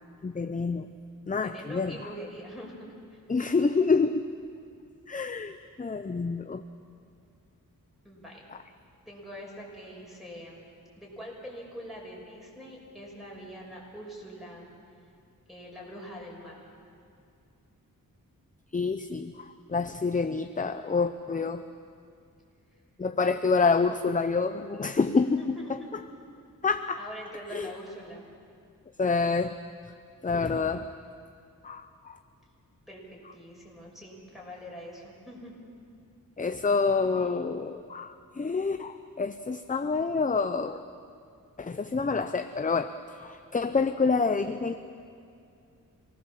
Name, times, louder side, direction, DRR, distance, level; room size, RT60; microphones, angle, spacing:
voice 1, 0.2-0.9 1.3-1.9 3.3-4.2 5.1-6.6 18.7-21.6 23.0-25.4 26.6-27.0 27.5-27.7 29.0-29.6 30.2-30.9 31.6-32.2 36.4-40.8 41.6-42.9 43.2-44.8, left 4 dB, 25° left, 9 dB, 0.6 m, -27 dB
voice 2, 1.3-3.2 8.0-8.4 9.1-10.7 11.0-14.7 15.5-16.7 22.7-22.8 25.4-25.7 27.0-28.2 32.9-33.0 33.3-35.5, equal, ahead, -3 dB, 6.2 m, -43 dB
26.0 x 19.5 x 7.4 m, 2.4 s
wide cardioid pair, 120°, 34 cm